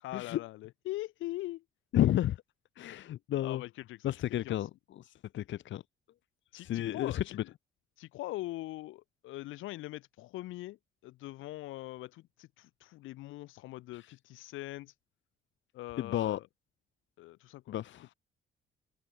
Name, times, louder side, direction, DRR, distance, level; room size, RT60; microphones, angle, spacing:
voice 1, 0.0-1.6 2.8-3.0 3.4-4.7 6.5-7.5 8.0-10.8 11.0-14.9 15.7-16.5 17.2-17.7, left 17 dB, 90° left, 0.8 m, -42 dB
voice 2, 1.9-2.4 2.8-3.6 4.0-4.7 5.0-5.8 6.6-7.4 16.0-16.4 17.7-18.1, left 12 dB, 70° left, 1.1 m, -31 dB
open air
cardioid pair, 90°, 20 cm